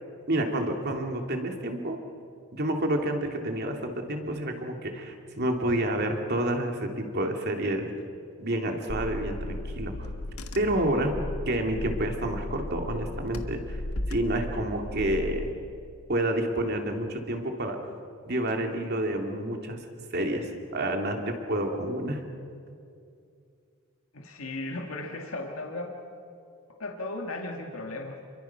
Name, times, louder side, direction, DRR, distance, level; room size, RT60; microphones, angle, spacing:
voice 1, 0.3-2.0 2.5-7.9 8.4-10.1 10.5-11.1 11.4-13.8 14.1-15.5 16.1-17.8 18.2-19.8 20.1-22.2, right 1 dB, 50° right, 3 dB, 2.6 m, -29 dB
Car / Engine, 8.9-15.5, left 1 dB, 85° left, 1.6 m, -35 dB
voice 2, 24.1-25.9 26.8-28.1, left 2 dB, 70° left, 2 dB, 2.1 m, -36 dB
30.0 x 23.0 x 5.9 m, 2.4 s
head